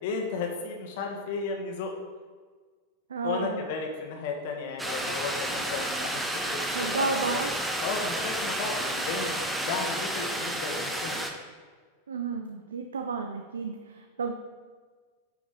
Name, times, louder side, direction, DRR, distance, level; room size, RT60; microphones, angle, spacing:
voice 1, 0.0-1.9 3.2-7.4 7.8-11.2, left 4 dB, 50° left, 2 dB, 1.3 m, -34 dB
voice 2, 3.1-3.6 6.7-7.5 12.1-14.3, right 4 dB, 70° right, 5 dB, 0.5 m, -32 dB
sound 1, 4.8-11.3, right 1 dB, 5° right, 0.9 m, -31 dB
9.6 x 5.0 x 3.7 m, 1.5 s
figure-of-eight pair, 90°, 0 cm